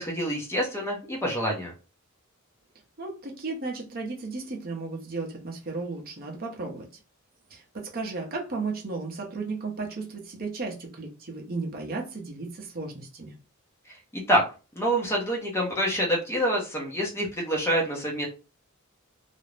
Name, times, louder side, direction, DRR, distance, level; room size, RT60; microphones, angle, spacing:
voice 1, 0.0-1.7 14.1-14.4 14.8-18.3, equal, 10° left, 0.6 m, -26 dB
voice 2, 3.0-6.9 7.5-13.3, right 3 dB, 45° right, 0.6 m, -34 dB
2.4 x 2.0 x 3.1 m
head